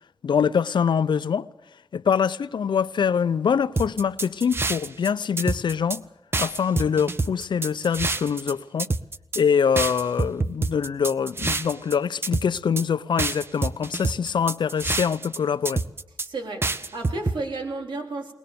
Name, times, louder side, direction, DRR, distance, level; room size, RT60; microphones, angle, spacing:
voice 1, 0.2-1.5 1.9-6.0 6.4-8.9 9.4-15.8, left 7 dB, 75° left, 0.7 m, -24 dB
sound 1, 3.8-5.1 5.4-6.0 6.3-8.5 8.8-9.4 9.8-11.9 12.2-12.8 13.2-15.4 15.7-16.3 16.6-17.4, right 3 dB, 30° right, 0.7 m, -26 dB
voice 2, 16.2-18.3, right 2 dB, 85° right, 3.9 m, -32 dB
22.0 x 19.5 x 6.9 m
wide cardioid pair, 165°, 8 cm